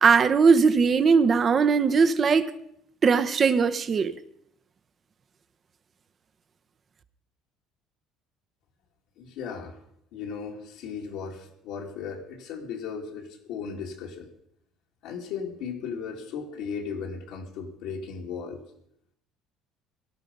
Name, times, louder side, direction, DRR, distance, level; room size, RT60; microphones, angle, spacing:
voice 1, 0.0-2.5 3.0-4.2, right 5 dB, 35° right, 1.0 m, -20 dB
voice 2, 9.2-9.8 10.1-14.3 15.0-18.6, left 6 dB, 80° left, 2.5 m, -36 dB
17.5 x 11.5 x 5.4 m
cardioid pair, 115°, 0 cm